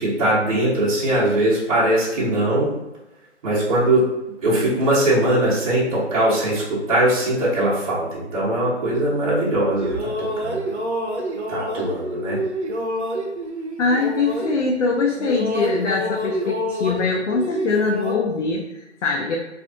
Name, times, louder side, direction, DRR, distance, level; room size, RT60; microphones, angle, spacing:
voice 1, 0.0-2.7 3.4-4.1 4.4-10.7 11.5-12.4, right 1 dB, 30° right, -8 dB, 0.9 m, -21 dB
sound 1, 9.5-14.9 15.2-18.2, equal, 65° right, 0.6 m, -27 dB
voice 2, 13.8-19.4, left 4 dB, 85° left, -1 dB, 0.5 m, -22 dB
2.4 x 2.4 x 2.5 m, 0.95 s
figure-of-eight pair, 145°, 36 cm